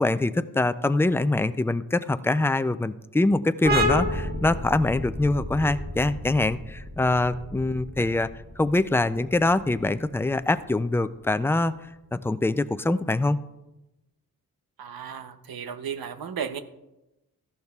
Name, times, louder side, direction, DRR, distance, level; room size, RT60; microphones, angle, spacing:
voice 1, 0.0-8.3 8.6-11.8 12.1-13.4, left 2 dB, 5° left, 13 dB, 0.3 m, -24 dB
sound 1, 3.6-10.9, equal, 25° right, 1.4 m, -31 dB
voice 2, 14.8-16.6, right 7 dB, 85° right, 10 dB, 0.8 m, -34 dB
15.0 x 12.0 x 2.4 m, 0.97 s
wide cardioid pair, 95°, 35 cm